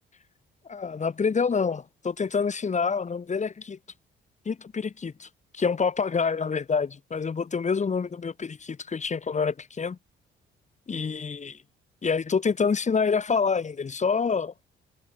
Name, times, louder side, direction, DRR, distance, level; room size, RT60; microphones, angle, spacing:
voice 1, 0.7-3.8 4.5-5.3 5.5-10.0 10.9-11.6 12.0-14.6, left 5 dB, 35° left, 4.4 m, -27 dB
cardioid pair, 90°, 20 cm